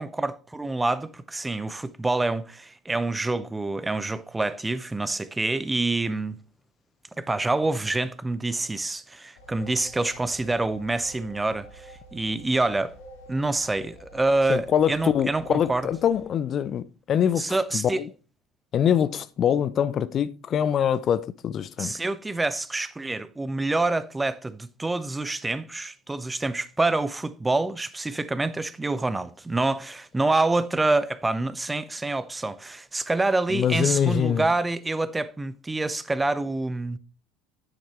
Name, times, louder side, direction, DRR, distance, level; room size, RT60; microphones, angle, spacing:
voice 1, 0.0-6.4 7.2-12.9 13.3-15.9 17.4-18.0 21.8-37.0, right 2 dB, 10° right, 0.7 m, -27 dB
sound 1, 9.4-16.2, right 1 dB, 65° left, 4.4 m, -48 dB
voice 2, 14.5-18.1 18.7-21.9 33.5-34.4, left 9 dB, 35° left, 0.5 m, -24 dB
10.0 x 9.0 x 3.1 m
figure-of-eight pair, 65°, 0 cm